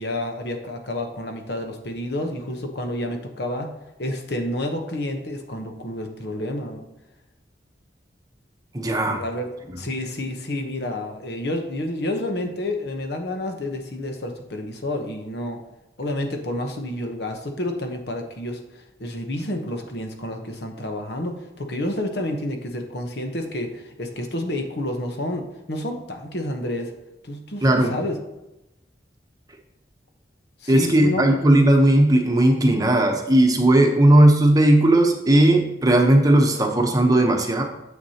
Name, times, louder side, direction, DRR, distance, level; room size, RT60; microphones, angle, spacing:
voice 1, 0.0-3.7 4.0-6.8 9.1-9.5 9.8-15.6 16.0-26.9 27.2-28.1 30.6-31.3, left 1 dB, 65° left, 4 dB, 1.0 m, -29 dB
voice 2, 8.7-9.2 27.6-27.9 30.7-37.6, right 1 dB, 20° right, 2 dB, 0.9 m, -17 dB
9.4 x 7.2 x 2.9 m, 0.94 s
head